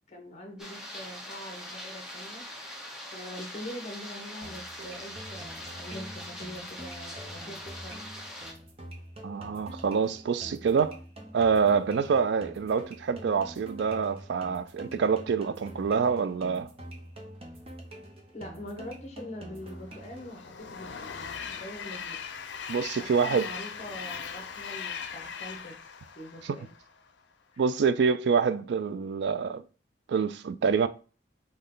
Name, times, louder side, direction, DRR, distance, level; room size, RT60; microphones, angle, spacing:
voice 1, 0.1-2.5 3.1-8.0 18.3-22.2 23.0-25.8 26.1-26.7 27.5-27.6, left 1 dB, 40° left, 1.0 m, -43 dB
sound 1, 0.6-8.5, left 1 dB, 5° right, 0.9 m, -42 dB
sound 2, 4.4-20.4, equal, 35° right, 0.7 m, -45 dB
voice 2, 9.2-11.0 11.3-16.7 22.7-23.5 26.4-26.6 27.6-29.6 30.1-30.9, right 6 dB, 65° right, 0.3 m, -26 dB
Train, 19.6-27.1, left 6 dB, 80° left, 0.5 m, -40 dB
5.3 x 2.3 x 3.8 m
head